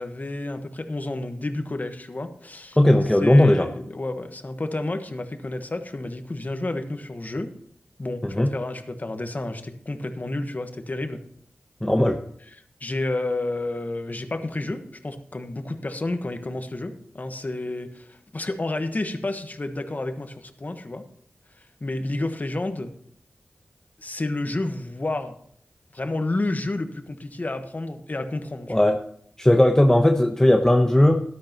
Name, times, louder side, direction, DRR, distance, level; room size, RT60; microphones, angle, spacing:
voice 1, 0.0-2.8 3.2-7.5 8.0-11.2 12.8-21.0 21.6-22.9 24.0-25.4 25.9-28.8, left 2 dB, 45° left, 8 dB, 1.3 m, -30 dB
voice 2, 2.8-3.7 8.2-8.5 11.8-12.2 28.7-29.0 29.4-31.2, left 1 dB, 15° left, 3 dB, 1.0 m, -17 dB
13.0 x 12.0 x 3.0 m, 0.64 s
cardioid pair, 40°, 4 cm